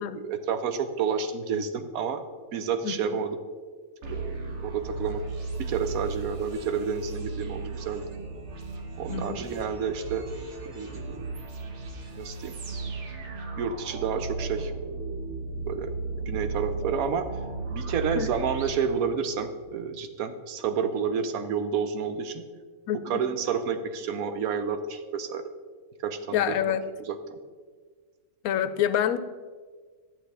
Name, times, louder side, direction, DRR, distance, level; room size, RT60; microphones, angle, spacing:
voice 1, 0.1-2.2 2.5-3.4 4.1-5.2 5.6-8.0 9.0-10.3 10.7-11.3 12.2-12.5 13.6-14.7 15.7-15.9 16.3-17.3 17.7-22.4 23.1-25.4 26.0-26.8 27.1-27.4, right 6 dB, 90° right, 9 dB, 1.2 m, -30 dB
sound 1, 4.0-19.6, right 3 dB, 60° right, 1.2 m, -36 dB
voice 2, 9.1-9.4 18.1-18.3 22.9-23.2 26.3-26.8 28.4-29.2, left 10 dB, 85° left, 12 dB, 1.0 m, -27 dB
11.0 x 7.8 x 3.3 m, 1.5 s
omnidirectional pair, 1.5 m